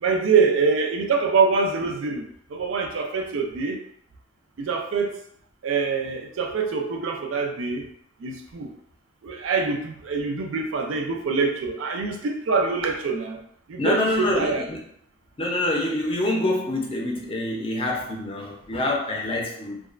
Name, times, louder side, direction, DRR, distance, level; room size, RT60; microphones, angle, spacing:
voice 1, 0.0-2.2 2.5-3.8 4.6-5.1 5.6-7.9 8.2-8.7 9.2-13.4 13.7-14.7, right 5 dB, 80° right, 4 dB, 0.4 m, -24 dB
voice 2, 13.8-14.8 15.4-19.8, left 1 dB, 30° left, -1 dB, 0.4 m, -26 dB
2.4 x 2.2 x 2.4 m, 0.68 s
head